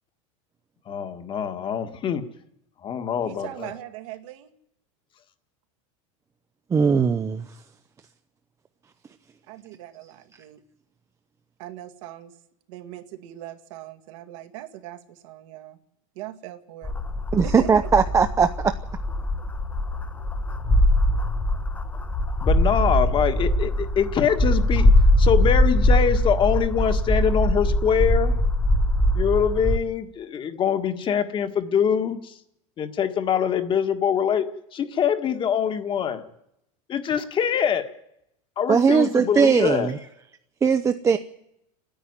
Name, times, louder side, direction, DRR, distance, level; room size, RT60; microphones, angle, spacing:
voice 1, 0.9-2.2 2.8-3.7 22.4-24.9 25.2-28.3 29.1-32.3 32.8-34.5 34.7-36.3 36.9-37.9 38.6-39.9, left 8 dB, 30° left, 9 dB, 1.6 m, -24 dB
voice 2, 3.2-4.5 9.5-10.6 11.6-12.4 12.7-15.8 16.2-16.9 17.4-18.1, right 13 dB, 70° right, 7 dB, 2.0 m, -40 dB
voice 3, 6.7-7.4 17.3-18.7 38.7-40.0 40.6-41.2, right 6 dB, 20° right, 9 dB, 0.7 m, -19 dB
sound 1, 16.8-29.8, left 1 dB, 10° left, 1.0 m, -22 dB
29.0 x 10.0 x 9.6 m, 0.81 s
supercardioid pair, 135°, 17 cm